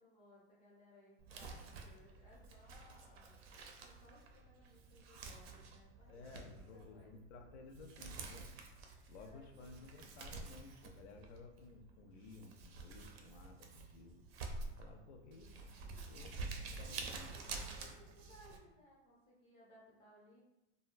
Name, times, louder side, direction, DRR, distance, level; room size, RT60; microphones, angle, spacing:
voice 1, 0.0-3.4 3.8-6.3 6.7-7.1 9.1-10.1 16.7-20.4, equal, 15° left, -5 dB, 0.5 m, -64 dB
Crumpling crinkling, 1.2-18.6, right 3 dB, 60° right, 0.5 m, -49 dB
voice 2, 6.1-8.5 9.1-14.2 14.6-15.7 16.1-17.3, left 3 dB, 70° left, 4 dB, 0.5 m, -56 dB
2.6 x 2.2 x 2.4 m, 0.94 s
supercardioid pair, 160°, 35 cm